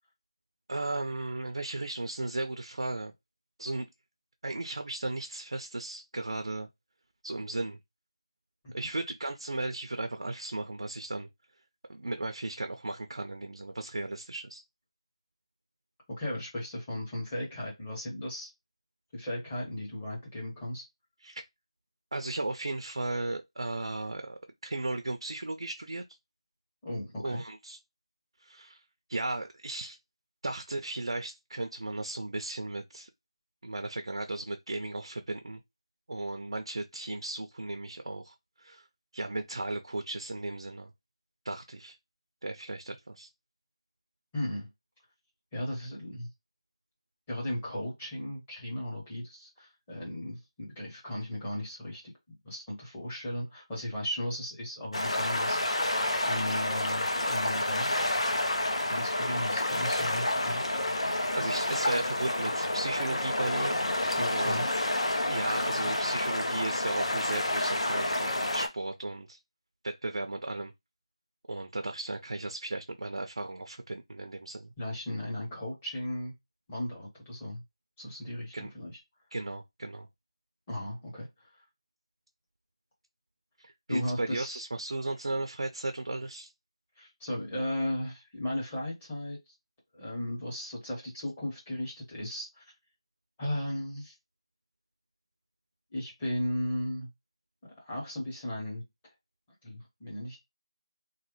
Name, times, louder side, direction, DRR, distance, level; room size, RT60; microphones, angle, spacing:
voice 1, 0.7-3.1 3.6-3.9 4.4-6.7 7.2-7.8 8.7-11.3 11.9-14.6 21.2-21.4 22.1-26.0 27.2-27.8 28.4-28.8 29.1-30.0 30.4-33.1 33.6-35.6 36.1-38.8 39.1-40.9 41.4-42.0 42.4-43.3 61.3-63.8 64.3-64.8 65.3-69.4 69.8-70.7 71.5-74.7 78.5-78.7 79.3-80.1 83.6-86.5, right 2 dB, 65° right, 0.4 m, -35 dB
voice 2, 16.1-18.5 19.1-20.8 26.8-27.4 44.3-44.7 45.5-46.3 47.3-52.1 52.4-58.1 58.8-60.6 64.2-64.7 74.8-76.3 76.7-77.6 78.0-79.0 80.7-81.5 83.9-84.6 87.0-89.4 89.9-92.6 93.4-94.1 95.9-97.1 97.8-98.8 99.6-100.4, left 1 dB, 10° left, 0.8 m, -36 dB
sound 1, 54.9-68.7, left 1 dB, 70° left, 0.8 m, -29 dB
3.1 x 2.1 x 3.0 m
figure-of-eight pair, 170°, 3 cm